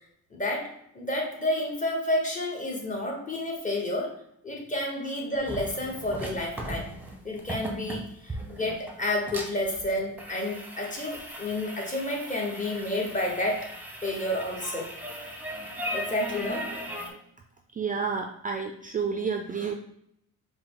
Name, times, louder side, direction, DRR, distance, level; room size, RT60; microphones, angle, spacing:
voice 1, 0.3-4.1 4.4-6.9 7.2-13.7 14.0-14.9 15.9-16.7, left 1 dB, 25° left, -1 dB, 1.2 m, -30 dB
sound 1, 5.4-17.1, equal, 5° right, 0.9 m, -38 dB
voice 2, 17.7-19.7, right 5 dB, 25° right, 4 dB, 0.3 m, -30 dB
4.7 x 2.1 x 3.8 m, 0.74 s
cardioid pair, 95°, 32 cm